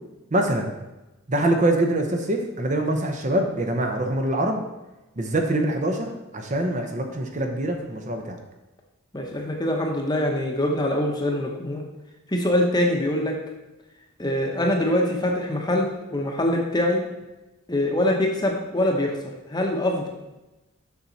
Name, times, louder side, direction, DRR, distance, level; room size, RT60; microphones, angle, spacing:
voice 1, 0.3-0.7 1.3-4.6 5.2-8.4, right 1 dB, 35° right, 3 dB, 0.8 m, -24 dB
voice 2, 9.1-11.8 12.3-13.4 14.2-17.0 17.7-19.2 19.5-20.1, left 1 dB, 20° left, 1 dB, 0.9 m, -23 dB
7.3 x 6.1 x 4.0 m, 1.0 s
head